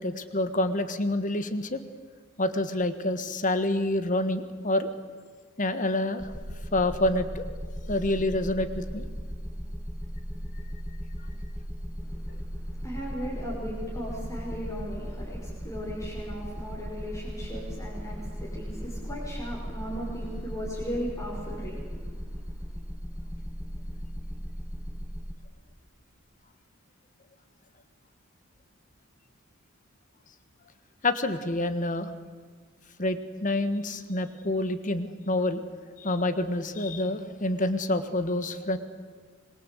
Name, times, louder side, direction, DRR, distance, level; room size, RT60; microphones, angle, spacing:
voice 1, 0.0-1.8 2.4-4.9 5.6-6.3 6.7-7.4 7.9-9.0 12.3-12.4 31.0-32.1 33.0-35.6 36.0-38.8, left 1 dB, 40° left, 11 dB, 1.6 m, -27 dB
sound 1, 6.2-25.3, equal, 5° right, 1.4 m, -37 dB
voice 2, 12.0-22.8, equal, 15° left, -5 dB, 5.3 m, -37 dB
25.5 x 22.0 x 8.3 m, 1.5 s
head